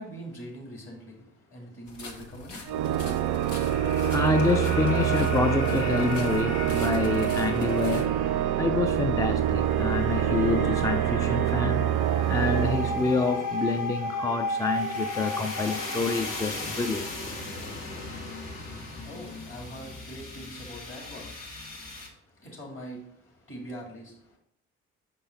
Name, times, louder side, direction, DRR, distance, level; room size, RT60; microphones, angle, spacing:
voice 1, 0.0-3.1 18.7-24.4, equal, 35° left, 2.9 m, -44 dB
sound 1, 1.9-8.0, left 4 dB, 80° left, 0.9 m, -45 dB
Organ, 2.7-13.6, right 11 dB, 55° right, 0.4 m, -26 dB
sound 2, 2.8-22.1, left 2 dB, 60° left, 1.6 m, -36 dB
voice 2, 4.1-8.3 8.6-12.0 12.3-17.1, left 4 dB, 10° left, 0.3 m, -27 dB
6.0 x 5.4 x 4.0 m
figure-of-eight pair, 45°, 37 cm